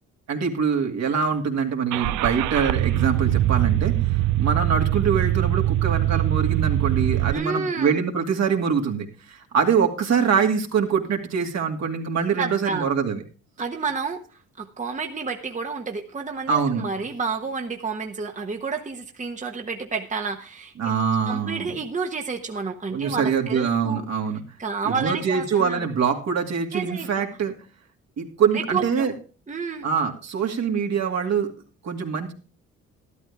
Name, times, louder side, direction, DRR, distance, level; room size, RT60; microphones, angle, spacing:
voice 1, 0.3-13.2 16.5-16.8 20.8-21.7 22.9-24.4 24.9-27.5 28.2-29.1 29.8-31.5 31.8-32.3, right 6 dB, 60° right, 3 dB, 2.4 m, -24 dB
Car / Engine starting, 1.9-7.3, right 15 dB, 80° right, 0.5 m, -22 dB
voice 2, 7.3-7.9 12.4-12.9 13.6-14.2 14.6-20.7 21.3-24.0 24.6-25.9 26.7-27.1 28.5-29.1 29.5-29.9, right 4 dB, 25° right, 4 dB, 1.2 m, -30 dB
12.5 x 12.5 x 3.5 m, 0.36 s
cardioid pair, 90°, 30 cm